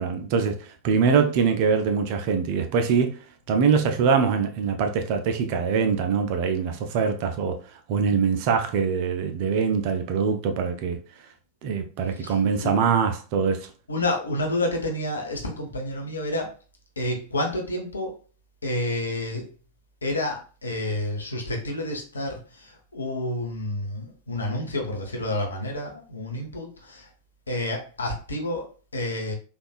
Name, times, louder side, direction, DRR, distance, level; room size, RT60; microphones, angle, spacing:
voice 1, 0.0-3.2 3.5-7.6 7.9-11.0 11.6-13.7, right 6 dB, 45° right, 0.5 m, -23 dB
voice 2, 12.2-12.8 13.9-16.5 17.0-18.2 18.6-19.5 20.0-27.1 27.5-29.3, left 1 dB, 75° left, 0.8 m, -29 dB
3.4 x 2.5 x 2.4 m
figure-of-eight pair, 90°, 0 cm